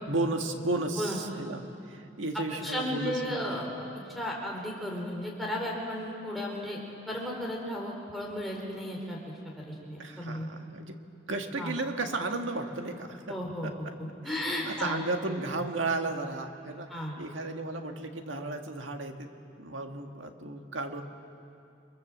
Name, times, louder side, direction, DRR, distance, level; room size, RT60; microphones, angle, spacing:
voice 1, 0.1-3.4 10.0-11.0 11.3-13.4 13.6-14.0 14.2-14.4 14.6-19.3 19.6-21.0, right 2 dB, 90° right, 4 dB, 1.9 m, -34 dB
voice 2, 2.6-3.7 4.1-6.8 7.1-9.2 9.6-10.5 11.6-11.7 13.3-15.0 16.9-17.2, left 1 dB, ahead, -3 dB, 4.4 m, -34 dB
29.5 x 23.0 x 7.5 m, 2.7 s
head